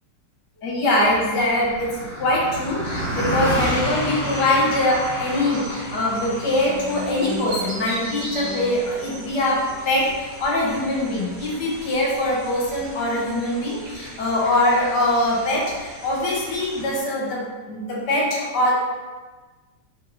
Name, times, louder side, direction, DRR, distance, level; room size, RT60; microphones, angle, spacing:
voice 1, 0.6-9.6 9.8-17.4 17.7-18.7, left 1 dB, 70° left, -3 dB, 1.5 m, -23 dB
Car passing by, 1.0-10.6, equal, 25° left, 1.0 m, -30 dB
sound 1, 2.8-17.0, equal, 55° right, 1.5 m, -37 dB
5.1 x 3.3 x 2.6 m, 1.3 s
omnidirectional pair, 1.9 m